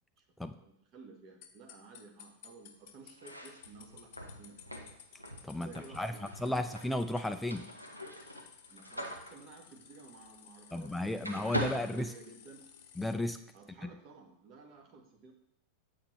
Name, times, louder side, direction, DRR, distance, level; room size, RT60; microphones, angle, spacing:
voice 1, 0.2-4.6 4.8-5.0 5.6-6.6 8.7-12.6 13.5-15.3, right 4 dB, 40° right, 3 dB, 1.5 m, -54 dB
sound 1, 1.4-13.2, left 9 dB, 50° left, 0.7 m, -57 dB
sound 2, 3.1-10.9 11.2-12.8, equal, 90° right, 0.8 m, -42 dB
voice 2, 5.4-7.7 10.7-12.1 13.0-13.4 13.8-13.9, left 1 dB, 5° left, 8 dB, 0.3 m, -34 dB
8.8 x 6.3 x 3.2 m, 0.73 s
figure-of-eight pair, 90°, 0 cm